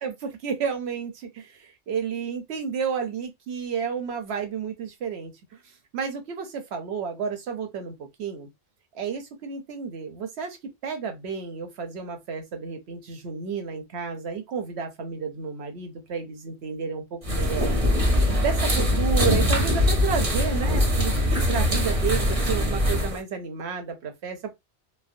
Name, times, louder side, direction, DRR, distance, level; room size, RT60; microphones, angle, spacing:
voice 1, 0.0-5.6 5.9-8.5 8.9-10.6 10.8-17.8 18.4-24.5, right 6 dB, 65° right, 0.9 m, -31 dB
sound 1, 17.2-23.2, left 1 dB, 35° right, 0.8 m, -22 dB
3.2 x 2.0 x 2.5 m
omnidirectional pair, 1.2 m